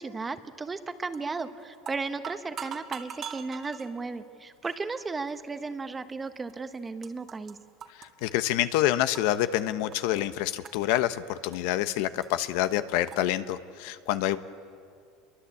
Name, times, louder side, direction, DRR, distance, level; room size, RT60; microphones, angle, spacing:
voice 1, 0.0-7.6, right 4 dB, 15° right, 10 dB, 1.2 m, -35 dB
sound 1, 1.1-1.4 1.7-3.9 4.6-4.8 5.6-5.7 6.5-6.6 6.8-7.5 7.8-9.4 9.7-10.2 10.6-11.8 12.2-12.3 12.6-12.7 13.1-13.2, right 8 dB, 35° right, 1.9 m, -42 dB
voice 2, 8.0-14.4, left 13 dB, 70° left, 12 dB, 1.0 m, -27 dB
28.0 x 23.0 x 8.5 m, 2.3 s
supercardioid pair, 135°, 0 cm